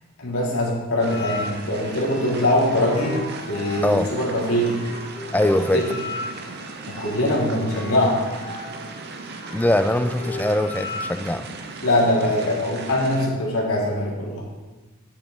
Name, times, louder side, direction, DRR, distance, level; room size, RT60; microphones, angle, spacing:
voice 1, 0.2-4.8 5.7-5.9 6.9-8.2 11.8-14.5, left 1 dB, 85° left, -3 dB, 2.8 m, -22 dB
sound 1, 1.0-13.3, right 3 dB, 45° right, 0.8 m, -37 dB
sound 2, 1.1-11.4, left 2 dB, 55° left, 2.2 m, -36 dB
voice 2, 5.3-5.9 9.5-11.5, left 1 dB, 10° left, 10 dB, 0.3 m, -22 dB
11.0 x 8.0 x 3.8 m, 1.2 s
head